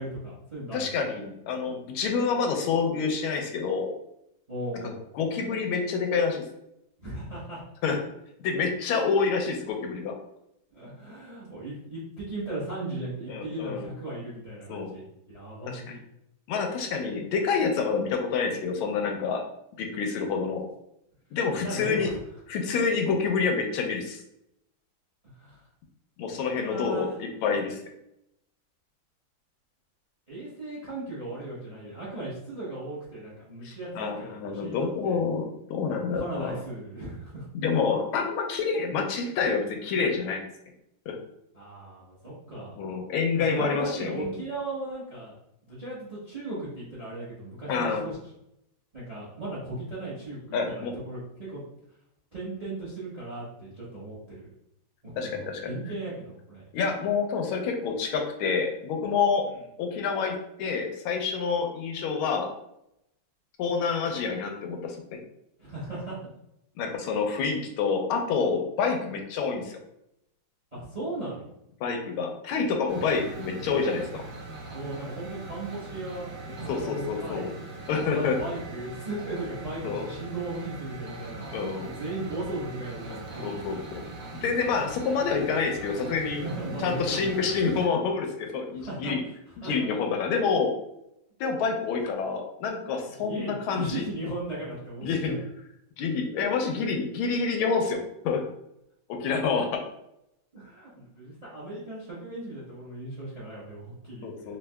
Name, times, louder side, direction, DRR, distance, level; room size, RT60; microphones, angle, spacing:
voice 1, 0.0-0.9 4.5-5.0 7.0-7.6 10.7-16.0 21.5-22.2 25.4-25.6 26.5-27.2 30.3-35.2 36.1-37.5 41.5-42.7 43.4-45.3 45.6-48.2 48.9-51.6 52.3-54.5 55.0-56.6 65.6-66.1 70.7-71.4 74.7-77.5 78.1-81.5 81.8-83.7 86.4-87.5 88.7-89.1 89.6-89.7 90.1-90.2 93.3-95.4 100.5-104.6, right 2 dB, 40° right, -8 dB, 0.5 m, -37 dB
voice 2, 0.7-3.9 5.1-6.4 7.8-8.0 8.4-10.1 13.3-13.9 14.7-14.9 15.7-15.8 16.5-19.4 19.8-20.7 21.3-22.1 22.5-24.2 26.2-27.8 33.6-36.5 37.5-40.4 41.1-41.2 42.8-44.4 47.7-48.0 50.5-50.9 55.2-55.6 56.7-59.4 59.8-62.5 63.6-65.2 66.8-69.8 71.8-74.2 76.7-77.5 77.9-78.4 79.8-80.1 81.5-81.9 83.4-84.0 84.4-86.4 86.8-89.2 89.6-90.7 91.4-94.1 95.0-95.3 96.0-98.0 98.2-98.4 99.1-99.8 104.2-104.6, left 5 dB, 90° left, 4 dB, 1.4 m, -27 dB
sound 1, 72.9-87.9, right 2 dB, 65° right, 1.3 m, -41 dB
4.5 x 2.2 x 2.2 m, 0.80 s
omnidirectional pair, 2.2 m